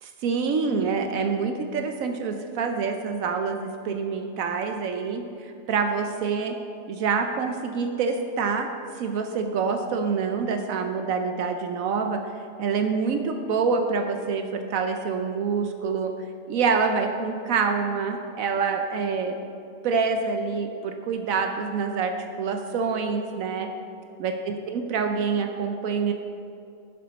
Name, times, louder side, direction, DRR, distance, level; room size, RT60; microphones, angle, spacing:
voice 1, 0.2-6.6 6.9-8.7 9.0-16.1 16.5-19.4 19.8-23.7 24.2-26.1, right 5 dB, 75° right, 5 dB, 1.1 m, -26 dB
11.5 x 6.9 x 5.1 m, 2.5 s
omnidirectional pair, 1.5 m